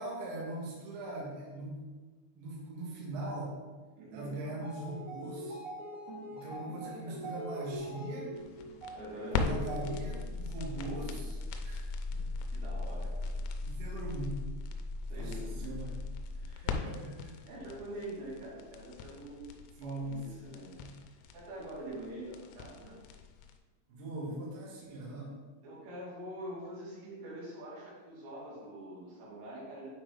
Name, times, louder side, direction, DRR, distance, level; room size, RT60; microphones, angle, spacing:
voice 1, 0.0-1.8 2.4-3.5 4.1-5.6 6.3-8.3 9.3-11.4 11.6-11.8 12.1-12.3 13.6-14.4 15.1-16.0 16.6-17.3 19.8-20.5 20.7-20.9 23.9-25.3, right 1 dB, 65° right, -5 dB, 3.1 m, -40 dB
voice 2, 4.0-4.3 6.3-6.6 6.8-7.3 8.9-9.6 12.5-13.4 15.1-15.8 16.4-16.7 17.5-20.7 21.3-23.0 25.6-29.9, right 1 dB, 85° right, -7 dB, 5.1 m, -45 dB
sound 1, 4.5-10.3, right 1 dB, 40° right, 2.2 m, -43 dB
sound 2, 8.4-23.5, left 4 dB, 85° left, 3.3 m, -38 dB
9.1 x 4.4 x 3.8 m, 1.3 s
omnidirectional pair, 5.9 m